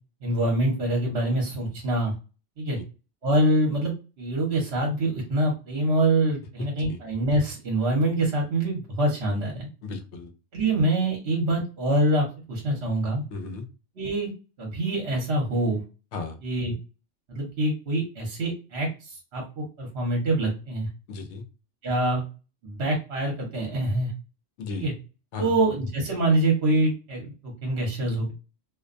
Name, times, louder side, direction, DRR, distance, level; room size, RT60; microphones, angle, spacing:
voice 1, 0.2-2.1 2.6-2.8 3.2-9.7 10.5-13.2 14.0-14.3 14.6-15.8 16.4-16.7 17.3-20.9 21.8-22.2 22.6-24.1 24.7-24.9 25.4-28.3, right 1 dB, 60° right, -1 dB, 1.1 m, -25 dB
voice 2, 9.8-10.3 13.3-13.7 16.1-16.4 21.1-21.4 24.6-24.9 25.3-25.5, left 3 dB, 75° left, 7 dB, 0.9 m, -35 dB
2.5 x 2.1 x 2.4 m, 0.32 s
omnidirectional pair, 1.3 m